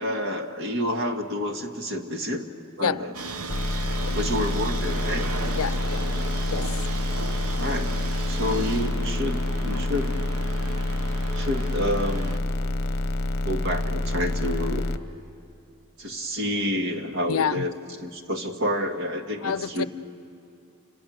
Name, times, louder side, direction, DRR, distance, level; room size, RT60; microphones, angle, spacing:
voice 1, 0.0-2.5 2.8-3.2 4.1-5.3 7.6-7.9 8.3-10.1 11.3-12.3 13.4-14.9 16.0-17.7 18.0-19.9, left 1 dB, 60° right, 5 dB, 1.9 m, -28 dB
sound 1, 3.1-12.4, right 3 dB, 85° right, 1.0 m, -36 dB
sound 2, 3.5-15.0, left 1 dB, 50° left, 1.1 m, -27 dB
voice 2, 3.9-4.2 5.6-6.0 6.4-6.7 17.3-17.7 19.4-19.8, left 7 dB, 85° left, 17 dB, 0.6 m, -28 dB
30.0 x 26.5 x 6.5 m, 2.8 s
head